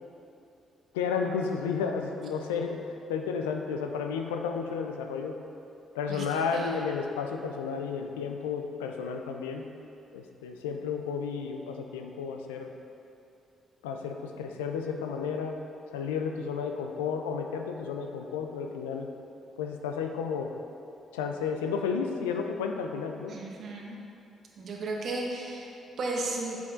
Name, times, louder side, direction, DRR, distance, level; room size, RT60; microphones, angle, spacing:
voice 1, 0.9-5.3 5.9-9.6 10.1-12.7 13.8-15.6 15.9-19.1 19.6-20.5 21.1-23.3, left 6 dB, 85° left, 4 dB, 0.3 m, -32 dB
voice 2, 6.1-6.8 23.3-24.0 24.6-26.6, right 2 dB, 55° right, -1 dB, 1.0 m, -35 dB
7.6 x 5.8 x 2.5 m, 2.7 s
hypercardioid pair, 45°, 0 cm